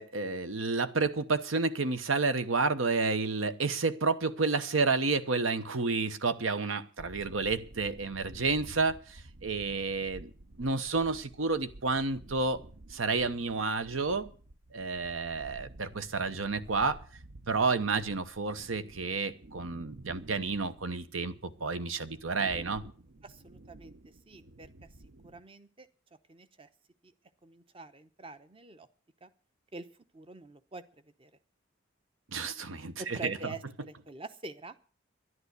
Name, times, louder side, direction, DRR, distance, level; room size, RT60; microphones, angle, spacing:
voice 1, 0.0-10.3 10.6-12.6 12.9-14.3 14.7-17.0 17.5-22.8 32.3-33.5, right 4 dB, 85° right, 12 dB, 1.1 m, -30 dB
sound 1, 7.0-25.4, right 2 dB, 65° right, 0.9 m, -51 dB
voice 2, 23.2-23.9 24.3-24.7 25.2-25.9 26.3-26.7 27.0-27.1 27.4-28.9 29.2-29.3 29.7-29.9 30.1-30.8 31.2-31.3 33.0-34.8, right 3 dB, 25° right, 12 dB, 0.8 m, -45 dB
11.0 x 11.0 x 8.2 m, 0.41 s
head